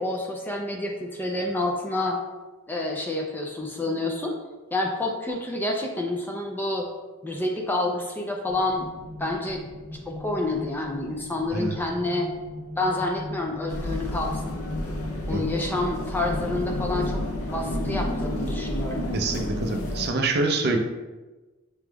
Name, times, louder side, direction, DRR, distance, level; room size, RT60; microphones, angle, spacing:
voice 1, 0.0-2.2 2.7-4.3 4.7-6.9 7.2-8.9 9.2-9.6 10.1-12.3 12.8-14.6 15.3-17.2 17.5-19.0, left 2 dB, 10° left, 0 dB, 0.4 m, -28 dB
sound 1, 8.5-16.6, left 1 dB, 30° left, 1.1 m, -40 dB
sound 2, 13.7-20.1, left 1 dB, 80° left, 0.6 m, -30 dB
voice 2, 19.1-20.8, right 3 dB, 50° right, 3 dB, 0.5 m, -25 dB
6.0 x 3.4 x 2.3 m, 1.2 s
head